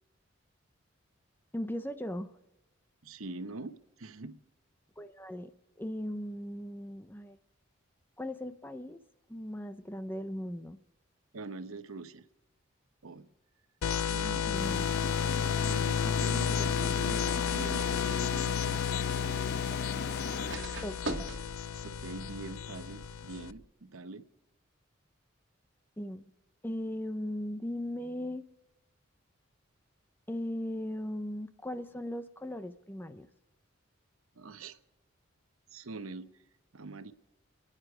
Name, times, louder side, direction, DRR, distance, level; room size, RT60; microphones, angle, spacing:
voice 1, 1.5-2.3 5.0-5.5 5.8-7.4 8.2-9.0 9.3-10.8 14.5-14.8 20.8-21.3 26.0-26.3 26.6-28.4 30.3-33.3, left 1 dB, 10° left, 10 dB, 0.6 m, -38 dB
voice 2, 3.0-4.4 11.3-12.2 13.0-13.3 14.1-14.5 15.6-17.2 17.5-18.9 21.8-24.2 34.4-34.8 35.7-36.3 36.7-37.1, right 3 dB, 85° right, 11 dB, 0.9 m, -43 dB
sound 1, 13.8-23.5, left 7 dB, 85° left, 0.5 m, -32 dB
sound 2, 14.6-20.6, left 3 dB, 50° left, 0.7 m, -39 dB
sound 3, 20.0-23.7, right 2 dB, 60° right, 1.9 m, -45 dB
29.0 x 10.0 x 4.9 m, 1.0 s
head